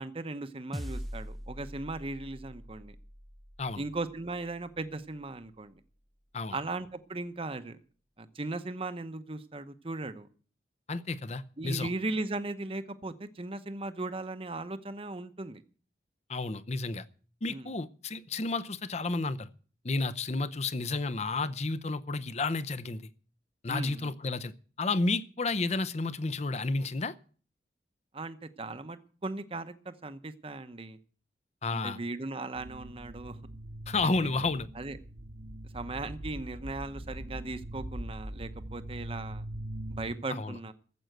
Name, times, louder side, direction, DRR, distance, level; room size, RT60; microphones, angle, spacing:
voice 1, 0.0-2.9 3.8-5.8 6.5-7.8 8.2-10.3 11.6-15.6 17.5-17.7 23.7-24.1 28.1-31.0 31.7-33.4 34.0-34.4 34.7-35.0 35.7-39.4 39.9-40.7, right 2 dB, 30° right, 0.9 m, -38 dB
sound 1, 0.7-5.3, equal, ahead, 0.5 m, -43 dB
voice 2, 10.9-11.9 16.3-17.0 17.4-19.5 19.8-23.1 23.6-27.2 31.6-32.0 33.9-34.7 40.3-40.6, left 3 dB, 40° left, 0.7 m, -31 dB
sound 2, 32.6-40.2, right 1 dB, 70° right, 1.4 m, -42 dB
14.0 x 7.9 x 7.9 m
head